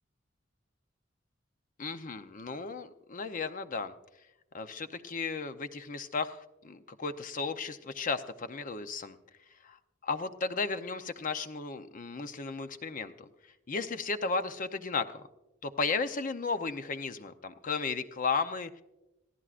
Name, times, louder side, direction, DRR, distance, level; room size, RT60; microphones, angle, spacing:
voice 1, 1.8-3.9 4.5-9.2 9.6-13.3 13.7-15.2 15.6-18.8, left 4 dB, 45° left, 9 dB, 0.7 m, -34 dB
26.5 x 15.0 x 2.5 m, 1.0 s
head